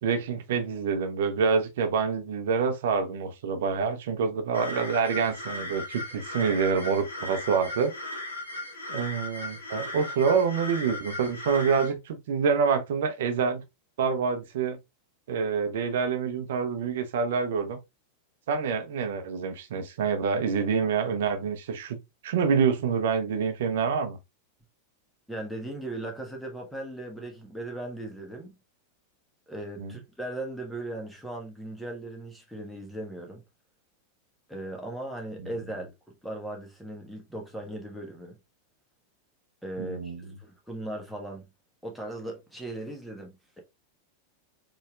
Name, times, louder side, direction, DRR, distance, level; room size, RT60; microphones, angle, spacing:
voice 1, 0.0-7.9 8.9-13.6 14.0-14.8 15.3-17.8 18.5-22.0 22.2-24.2 29.8-29.9 35.4-35.5 39.8-40.4, right 6 dB, 55° right, 0.8 m, -27 dB
sound 1, 4.5-11.9, left 1 dB, 80° left, 1.5 m, -37 dB
voice 2, 25.3-28.6 29.5-33.4 34.5-38.4 39.6-41.4 41.8-43.6, right 1 dB, ahead, 1.4 m, -38 dB
4.2 x 3.3 x 2.4 m
figure-of-eight pair, 90°, 0 cm